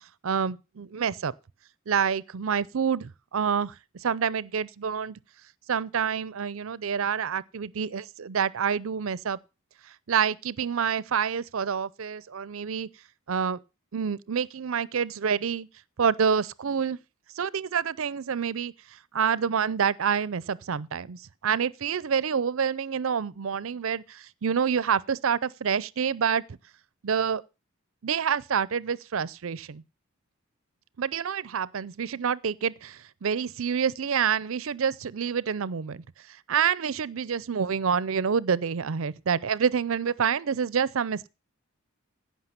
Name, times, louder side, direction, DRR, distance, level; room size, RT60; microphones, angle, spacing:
voice 1, 0.2-1.3 1.9-5.2 5.7-9.4 10.1-12.9 13.3-13.6 13.9-15.7 16.0-17.0 17.4-18.7 19.1-26.4 27.0-27.4 28.0-29.8 31.0-41.3, right 7 dB, 65° right, 0.5 m, -27 dB
15.5 x 5.8 x 5.8 m
head